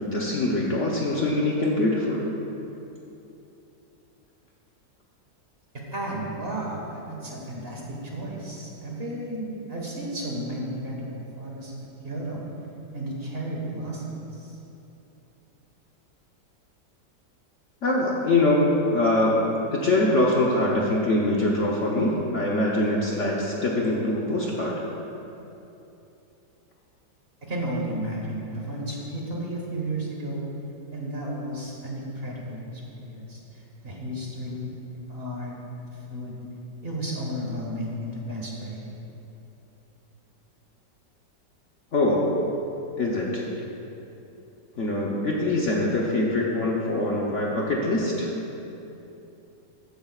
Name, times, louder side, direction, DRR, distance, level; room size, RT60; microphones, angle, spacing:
voice 1, 0.0-2.2 17.8-24.8 41.9-42.3 43.0-43.4 44.8-48.3, left 1 dB, 50° left, -3 dB, 1.0 m, -23 dB
voice 2, 5.9-12.4 12.9-14.6 27.5-30.5 30.9-34.8 35.1-35.5 35.9-36.3 36.8-38.8, right 1 dB, 35° right, -3 dB, 1.5 m, -33 dB
14.5 x 10.0 x 2.4 m, 2.9 s
omnidirectional pair, 1.9 m